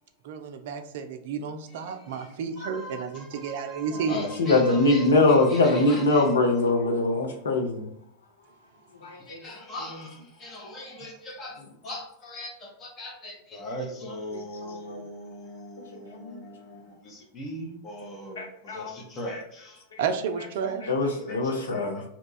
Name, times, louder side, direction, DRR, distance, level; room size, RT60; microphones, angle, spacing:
voice 1, 0.2-4.3 20.0-20.8, right 6 dB, 55° right, 7 dB, 0.4 m, -31 dB
voice 2, 2.2-6.3 6.7-6.8 9.3-19.8 21.3-22.0, equal, 30° left, -2 dB, 0.7 m, -40 dB
voice 3, 4.1-7.9 9.0-9.4 14.3-15.0 16.1-16.4 18.4-18.9 20.8-22.0, left 2 dB, 65° left, 2 dB, 0.7 m, -23 dB
2.9 x 2.3 x 3.9 m, 0.76 s
figure-of-eight pair, 90°, 0 cm